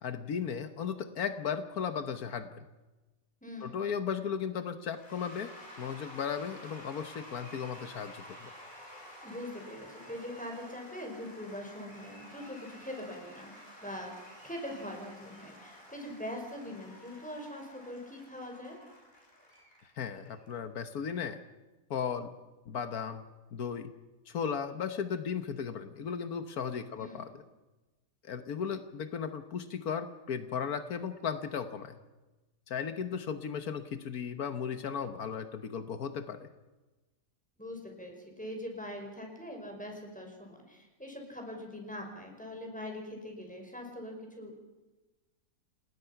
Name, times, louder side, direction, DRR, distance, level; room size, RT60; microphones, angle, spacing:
voice 1, 0.0-2.6 3.6-5.5 5.8-8.5 20.0-21.4 21.9-22.3 22.7-23.2 23.5-23.9 24.3-27.4 28.2-32.0 32.7-36.5, left 7 dB, 80° left, 9 dB, 1.6 m, -36 dB
voice 2, 3.4-3.8 9.2-14.2 14.4-18.8 27.0-27.2 37.6-44.5, left 1 dB, 5° left, 2 dB, 5.3 m, -42 dB
Cheering / Applause / Crowd, 4.9-20.6, equal, 30° left, 7.0 m, -51 dB
28.5 x 19.5 x 5.9 m, 1.1 s
omnidirectional pair, 1.5 m